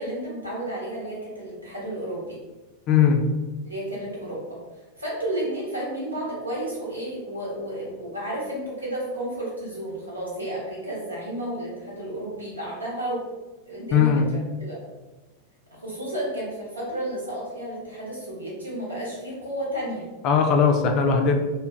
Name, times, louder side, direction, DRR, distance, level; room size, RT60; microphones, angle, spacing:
voice 1, 0.0-2.4 3.6-4.6 5.0-13.2 13.7-14.2 14.6-14.8 15.7-20.1, right 1 dB, 80° right, -6 dB, 0.9 m, -32 dB
voice 2, 2.9-3.2 13.9-14.3 20.2-21.4, left 6 dB, 35° left, 3 dB, 0.3 m, -19 dB
2.7 x 2.1 x 2.4 m, 1.1 s
figure-of-eight pair, 90°, 0 cm